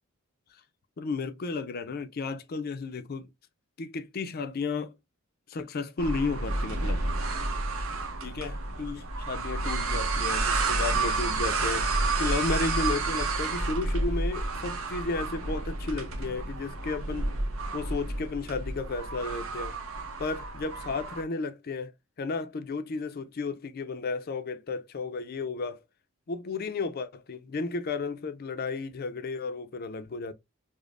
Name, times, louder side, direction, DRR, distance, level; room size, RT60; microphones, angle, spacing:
voice 1, 1.0-3.3 3.8-4.9 5.5-7.0 8.2-11.9 12.2-17.3 17.7-19.8 20.2-21.9 22.2-25.8 26.3-30.3, left 3 dB, 45° left, 0.4 m, -33 dB
sound 1, 6.0-21.2, right 3 dB, 75° right, 0.8 m, -30 dB
5.0 x 2.1 x 2.4 m
head